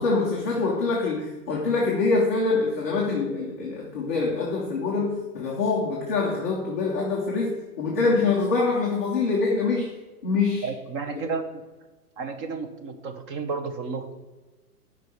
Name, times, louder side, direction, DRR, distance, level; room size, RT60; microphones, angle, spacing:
voice 1, 0.0-9.9 10.2-10.7, left 3 dB, 10° left, -5 dB, 0.3 m, -25 dB
voice 2, 10.6-11.6 12.2-14.1, right 4 dB, 25° right, 7 dB, 0.9 m, -32 dB
8.0 x 5.3 x 7.2 m, 1.2 s
hypercardioid pair, 120°, 47 cm